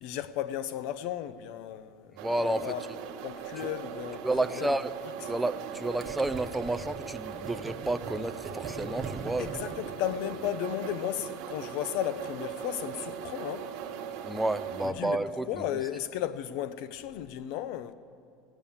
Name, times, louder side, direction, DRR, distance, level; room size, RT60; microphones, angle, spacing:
voice 1, 0.0-2.2 2.6-2.8 3.2-4.8 9.4-13.7 14.8-17.9, left 12 dB, 60° left, 0.6 m, -35 dB
voice 2, 2.2-2.7 4.2-4.9 5.3-9.5 14.2-15.8, right 1 dB, 5° right, 0.4 m, -31 dB
sound 1, 2.2-14.9, right 8 dB, 55° right, 1.3 m, -39 dB
Gurgling, 6.0-10.7, right 4 dB, 20° right, 1.1 m, -41 dB
17.0 x 8.9 x 7.1 m
cardioid pair, 160°, 0 cm